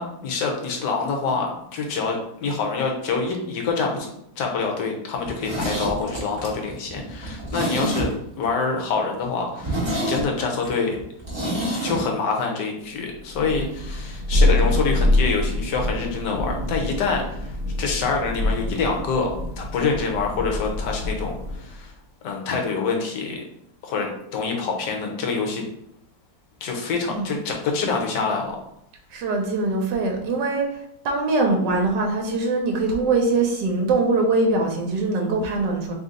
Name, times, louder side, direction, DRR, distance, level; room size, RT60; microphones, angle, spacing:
voice 1, 0.0-4.1 4.4-8.1 8.4-11.0 11.8-19.3 19.6-21.9 22.2-23.4 23.8-25.6 26.6-28.6, left 4 dB, 75° left, 1 dB, 1.4 m, -26 dB
Zipper (clothing), 5.2-8.5 8.8-8.9 9.2-9.3 9.6-12.0 12.3-12.4, right 1 dB, 15° right, 1.2 m, -28 dB
Thunder, 13.3-21.7, left 1 dB, 50° right, 0.6 m, -25 dB
voice 2, 29.1-30.8 31.0-35.9, right 3 dB, 75° right, 1 dB, 1.3 m, -22 dB
3.3 x 2.7 x 3.7 m, 0.76 s
omnidirectional pair, 2.0 m